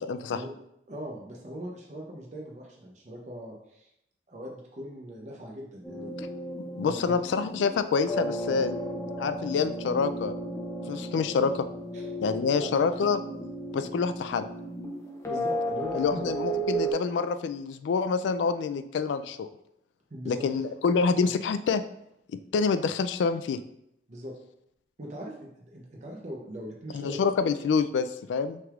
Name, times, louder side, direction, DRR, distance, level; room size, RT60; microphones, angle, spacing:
voice 1, 0.1-0.4 6.8-8.8 9.2-10.4 10.9-11.7 12.2-13.2 13.7-14.5 15.9-19.5 20.3-21.8 22.3-23.6 26.9-28.6, left 5 dB, 85° left, 11 dB, 0.3 m, -27 dB
voice 2, 0.9-3.9 4.3-6.1 6.8-7.2 11.9-12.1 12.5-12.7 15.3-16.3 20.1-20.7 21.2-21.3 24.1-24.3 25.0-27.2, equal, 40° right, -1 dB, 0.6 m, -40 dB
sound 1, 5.8-16.9, right 1 dB, 15° left, 0.6 m, -34 dB
6.0 x 3.4 x 2.4 m, 0.78 s
head